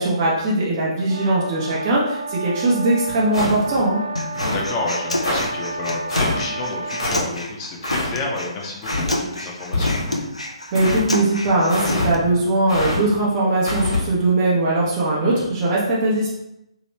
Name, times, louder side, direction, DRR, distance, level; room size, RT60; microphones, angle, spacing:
voice 1, 0.0-4.0 10.7-16.3, right 2 dB, 30° right, -5 dB, 0.8 m, -20 dB
sound 1, 1.1-7.3, right 2 dB, 45° right, 0.4 m, -31 dB
sound 2, 3.3-3.8 4.3-4.7 5.2-5.5 6.1-6.4 7.0-7.2 7.8-8.1 8.8-9.1 9.7-10.2 10.7-11.1 11.7-12.1 12.7-13.0 13.6-14.0, left 2 dB, 75° left, 1.3 m, -24 dB
Human voice, 4.2-12.1, left 1 dB, 90° left, 0.5 m, -29 dB
voice 2, 4.4-10.0, left 3 dB, 25° left, -1 dB, 0.7 m, -30 dB
3.0 x 2.9 x 3.1 m, 0.85 s
figure-of-eight pair, 130°, 3 cm